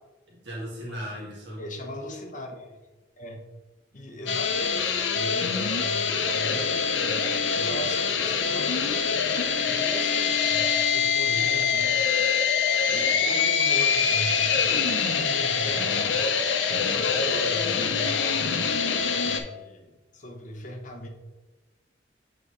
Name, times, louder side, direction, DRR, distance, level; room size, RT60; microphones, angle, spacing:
voice 1, 0.3-1.6 11.2-11.7 15.4-15.7, equal, 70° right, -3 dB, 1.6 m, -37 dB
voice 2, 1.6-2.8 3.2-3.4 3.9-7.2 7.5-9.4 9.6-10.7 10.9-11.9 12.9-16.4 16.7-21.1, equal, 45° left, 2 dB, 0.9 m, -39 dB
sound 1, 4.3-19.4, left 6 dB, 90° left, 0.7 m, -24 dB
7.7 x 4.0 x 3.1 m, 1.1 s
head